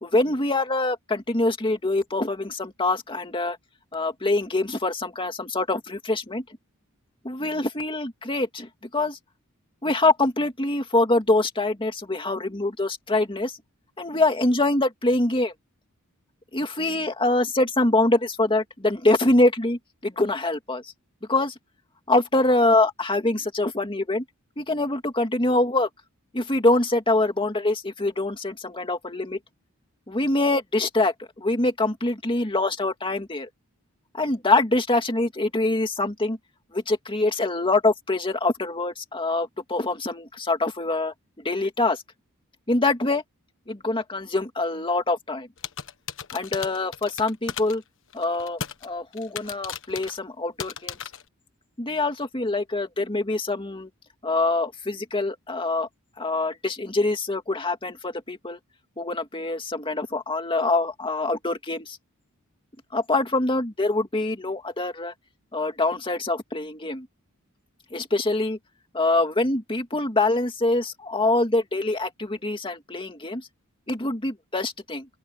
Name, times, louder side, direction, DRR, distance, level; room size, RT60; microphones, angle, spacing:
voice 1, 0.0-3.6 3.9-6.4 7.2-9.2 9.8-13.6 14.0-15.5 16.5-20.8 21.3-21.5 22.1-24.2 24.6-25.9 26.3-29.4 30.1-33.5 34.1-36.4 36.7-42.0 42.7-43.2 43.7-45.5 46.3-47.8 48.1-51.0 51.8-53.9 54.2-55.9 56.2-58.6 59.0-62.0 62.9-65.1 65.5-67.1 67.9-68.6 68.9-73.5 73.9-75.1, left 2 dB, 25° left, 2.3 m, -24 dB
sound 1, 45.6-47.8 48.1-48.9 49.1-50.2 50.6-51.2, left 7 dB, 65° left, 1.4 m, -35 dB
open air
head